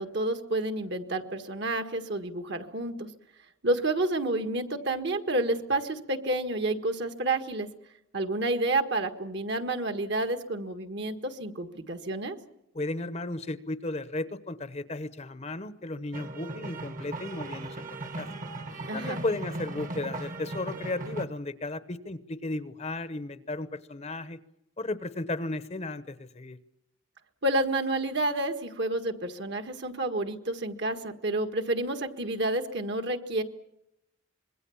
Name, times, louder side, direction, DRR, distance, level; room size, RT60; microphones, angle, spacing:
voice 1, 0.0-3.1 3.6-7.7 8.1-12.4 18.9-19.2 27.4-33.4, right 2 dB, 55° right, 7 dB, 1.7 m, -29 dB
voice 2, 12.7-17.8 18.0-18.3 18.9-24.4 24.8-26.6, left 2 dB, 35° left, 14 dB, 0.9 m, -34 dB
sound 1, 16.1-21.3, right 2 dB, 40° right, 1.3 m, -38 dB
25.5 x 21.5 x 7.2 m, 0.83 s
head